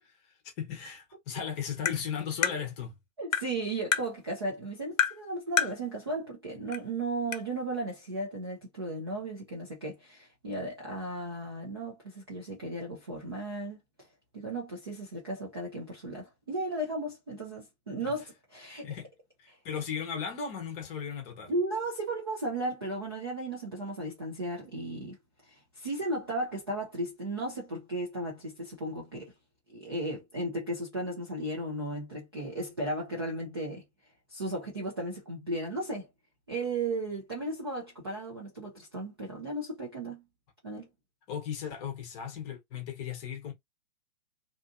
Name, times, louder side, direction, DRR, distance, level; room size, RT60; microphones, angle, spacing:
voice 1, 0.4-3.0 18.0-18.1 18.8-19.1 19.4-21.5 41.3-43.5, left 7 dB, 20° left, 0.7 m, -36 dB
Tap, 1.9-2.0 2.4-2.6 3.3-3.5 3.9-4.1 5.0-5.2 5.6-5.8 6.7-6.8 7.3-7.4, left 8 dB, 70° left, 0.7 m, -27 dB
voice 2, 3.2-13.8 14.3-18.2 18.5-18.9 21.5-25.2 25.5-29.3 29.7-33.8 34.3-36.1 36.5-40.2 40.6-40.9, right 2 dB, 20° right, 0.3 m, -35 dB
2.5 x 2.5 x 2.4 m
hypercardioid pair, 130°, 42 cm